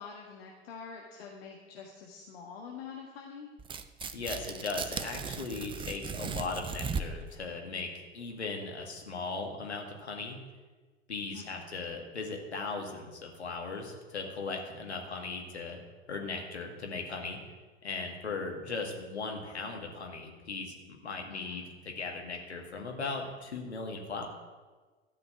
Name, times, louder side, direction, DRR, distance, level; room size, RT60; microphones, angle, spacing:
voice 1, 0.0-3.5 11.3-11.7 21.3-21.7, left 6 dB, 60° left, 0 dB, 1.7 m, -46 dB
Tearing, 3.6-7.3, right 5 dB, 15° right, 0.5 m, -37 dB
voice 2, 4.1-10.4 11.1-15.8 16.1-17.4 17.8-24.3, left 4 dB, 75° left, 2 dB, 2.1 m, -38 dB
13.5 x 5.9 x 8.2 m, 1.3 s
figure-of-eight pair, 85°, 33 cm